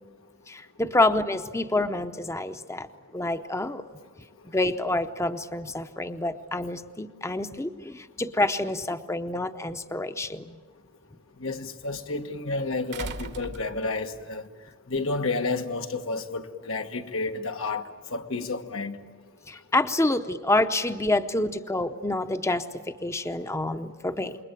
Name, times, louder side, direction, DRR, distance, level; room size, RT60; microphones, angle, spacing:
voice 1, 0.5-2.9 3.1-3.9 4.5-10.5 19.5-24.4, left 2 dB, 15° left, 0.7 m, -27 dB
sound 1, 9.6-9.7 12.9-14.2 15.6-15.7, right 3 dB, 60° right, 1.1 m, -38 dB
voice 2, 11.4-14.4 14.9-17.8 18.1-19.0, left 3 dB, 90° left, 1.5 m, -30 dB
27.5 x 21.5 x 9.1 m
head